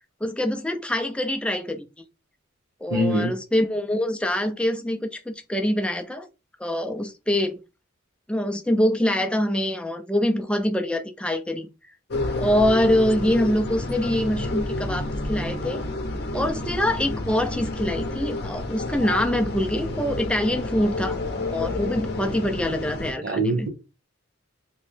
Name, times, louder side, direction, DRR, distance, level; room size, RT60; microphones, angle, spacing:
voice 1, 0.2-1.9 2.8-6.3 6.6-7.6 8.3-11.7 12.4-15.8 16.3-21.2 21.5-23.7, left 1 dB, 5° left, 0.4 m, -24 dB
voice 2, 2.9-3.3 23.2-23.7, right 1 dB, 45° right, 1.0 m, -23 dB
sound 1, 12.1-23.1, left 2 dB, 50° left, 0.7 m, -29 dB
3.1 x 3.0 x 3.2 m
head